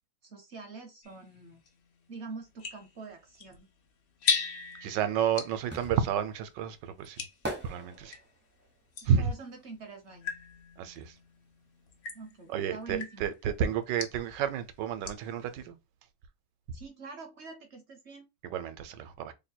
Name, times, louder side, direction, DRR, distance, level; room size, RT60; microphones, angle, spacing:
voice 1, 0.2-1.6 2.1-3.7 9.2-10.3 12.1-13.3 16.7-18.3, right 3 dB, 60° right, 0.7 m, -45 dB
sound 1, 1.0-8.3 8.9-15.4, left 6 dB, 70° left, 0.5 m, -39 dB
sound 2, 4.8-10.7 10.9-12.5 12.8-12.9, right 1 dB, 15° right, 0.4 m, -43 dB
voice 2, 4.8-7.3 7.6-8.2 9.0-9.3 10.8-11.1 12.5-15.7 18.4-19.3, right 8 dB, 80° right, 1.2 m, -31 dB
3.1 x 2.2 x 4.3 m
omnidirectional pair, 1.9 m